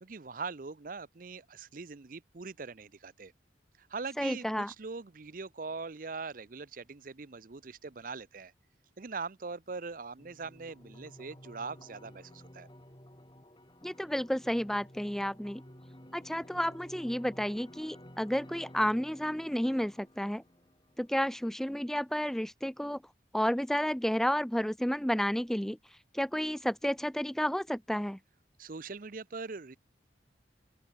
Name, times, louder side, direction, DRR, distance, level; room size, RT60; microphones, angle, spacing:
voice 1, 0.0-3.3 3.9-8.5 9.0-12.7 28.6-29.8, right 4 dB, 50° right, 0.7 m, -41 dB
voice 2, 4.2-4.7 13.8-15.6 16.1-20.4 21.0-23.0 23.3-25.8 26.1-28.2, equal, ahead, 0.4 m, -31 dB
sound 1, 10.2-21.2, equal, 25° left, 4.2 m, -53 dB
open air
head